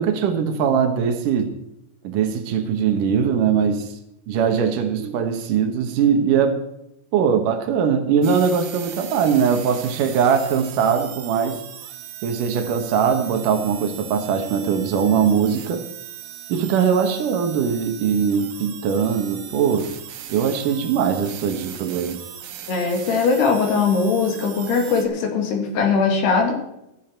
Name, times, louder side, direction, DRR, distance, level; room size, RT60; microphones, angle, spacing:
voice 1, 0.0-1.5 2.0-3.9 4.3-6.6 7.1-11.6 12.2-15.8 16.5-19.9 20.3-22.2, right 7 dB, 90° right, 6 dB, 1.8 m, -21 dB
sound 1, 8.2-25.1, right 10 dB, 75° right, 3.7 m, -38 dB
voice 2, 22.7-26.5, left 5 dB, 60° left, 2 dB, 3.8 m, -20 dB
15.0 x 13.0 x 4.5 m, 0.84 s
omnidirectional pair, 5.8 m